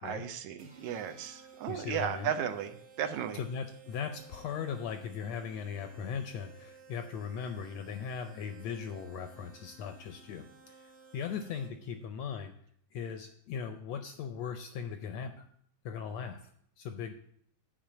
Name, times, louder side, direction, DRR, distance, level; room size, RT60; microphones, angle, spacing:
voice 1, 0.0-3.4, right 9 dB, 75° right, 7 dB, 1.9 m, -35 dB
sound 1, 0.6-12.0, right 5 dB, 40° right, 0.9 m, -56 dB
voice 2, 1.7-2.3 3.3-12.5 12.9-15.5 15.8-16.5 16.8-17.1, left 7 dB, 75° left, 7 dB, 1.6 m, -39 dB
8.9 x 5.1 x 7.5 m, 0.65 s
omnidirectional pair, 3.6 m